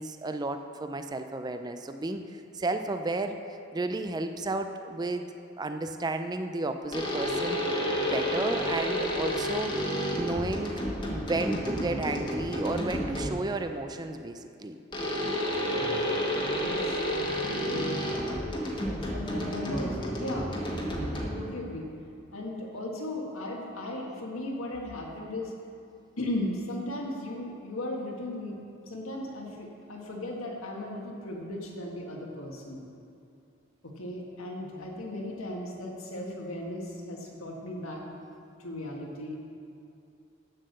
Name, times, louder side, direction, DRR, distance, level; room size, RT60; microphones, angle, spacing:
voice 1, 0.0-5.2 5.6-7.6 8.0-9.8 10.1-10.8 11.1-14.8 34.8-34.9, right 2 dB, 20° right, 7 dB, 0.4 m, -33 dB
sound 1, 6.9-13.5 14.9-21.6, equal, 25° left, 1.4 m, -30 dB
voice 2, 15.7-16.0 16.6-18.2 19.1-20.5 21.2-21.9 22.3-25.5 26.2-28.6 28.9-32.8 33.8-38.0 38.6-39.4, left 1 dB, 80° left, -1 dB, 1.7 m, -37 dB
8.6 x 7.5 x 6.6 m, 2.6 s
head